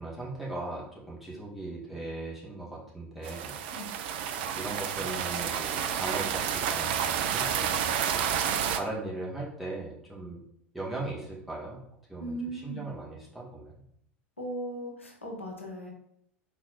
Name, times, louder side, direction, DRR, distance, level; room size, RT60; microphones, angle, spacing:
voice 1, 0.0-3.5 4.4-10.4 10.7-11.8 12.1-13.8, right 2 dB, 5° right, -6 dB, 1.8 m, -38 dB
sound 1, 3.2-8.8, right 8 dB, 55° right, 0.4 m, -30 dB
voice 2, 12.2-12.8 14.4-15.9, right 1 dB, 85° left, -1 dB, 0.9 m, -37 dB
4.1 x 3.2 x 4.1 m, 0.71 s
figure-of-eight pair, 75°, 7 cm